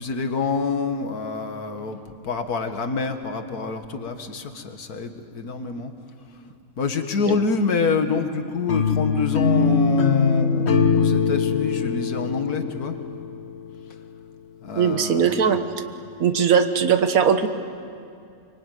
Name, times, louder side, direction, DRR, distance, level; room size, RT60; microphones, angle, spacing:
voice 1, 0.0-2.0 2.2-5.9 6.8-13.0 14.6-15.4, left 4 dB, 85° left, 7 dB, 2.1 m, -26 dB
sound 1, 8.7-13.8, left 5 dB, 50° left, 1.4 m, -22 dB
voice 2, 14.8-15.6 16.2-17.5, right 7 dB, 65° right, 8 dB, 1.7 m, -19 dB
24.5 x 23.5 x 9.2 m, 2.4 s
omnidirectional pair, 1.6 m